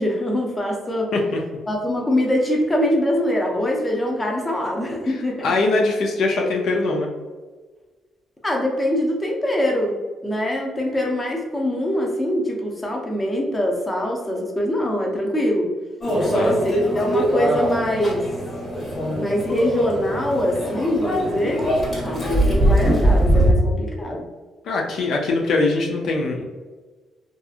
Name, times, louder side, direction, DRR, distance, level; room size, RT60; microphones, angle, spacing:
voice 1, 0.0-1.1 1.7-5.5 8.4-10.0 10.2-15.7 16.2-18.3 19.2-21.6 22.0-24.2, left 1 dB, 20° left, 0 dB, 0.6 m, -23 dB
voice 2, 5.4-7.1 16.3-16.5 24.6-26.5, left 3 dB, 70° left, 0 dB, 0.4 m, -22 dB
Microwave oven, 16.0-23.5, equal, 45° left, 1.1 m, -22 dB
2.7 x 2.4 x 2.4 m, 1.3 s
cardioid pair, 90°, 0 cm